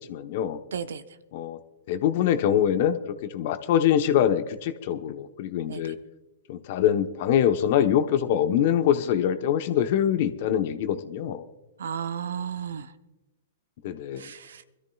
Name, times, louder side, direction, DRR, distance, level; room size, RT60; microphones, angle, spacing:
voice 1, 0.1-0.6 1.3-1.6 1.9-6.0 6.5-11.4 13.8-14.3, left 10 dB, 55° left, 0.9 m, -24 dB
voice 2, 0.7-1.0 5.7-5.9 11.8-12.9 14.2-14.6, right 7 dB, 75° right, 0.7 m, -34 dB
24.5 x 13.5 x 2.4 m
hypercardioid pair, 120°, 0 cm